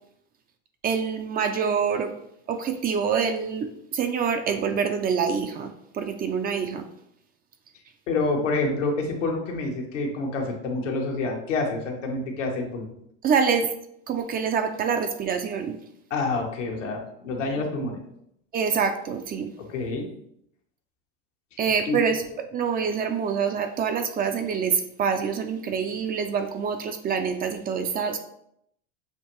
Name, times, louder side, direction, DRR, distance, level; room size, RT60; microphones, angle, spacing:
voice 1, 0.8-2.1 2.5-6.8 13.2-13.7 14.1-15.8 18.5-19.5 21.6-28.2, right 6 dB, 25° right, 7 dB, 0.4 m, -26 dB
voice 2, 8.1-12.9 16.1-18.0 19.6-20.1 21.9-22.0, left 3 dB, 85° left, 1 dB, 1.2 m, -27 dB
6.5 x 2.6 x 3.0 m, 0.74 s
hypercardioid pair, 100°, 36 cm